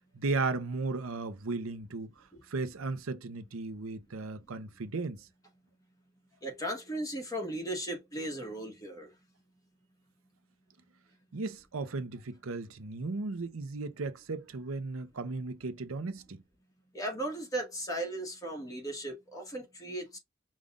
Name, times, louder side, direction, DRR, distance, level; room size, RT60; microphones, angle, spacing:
voice 1, 0.1-2.1 2.5-5.3 11.3-16.4, right 3 dB, 80° right, 0.7 m, -35 dB
voice 2, 6.4-9.1 16.9-20.2, right 1 dB, 15° left, 1.5 m, -36 dB
5.2 x 2.4 x 3.6 m
head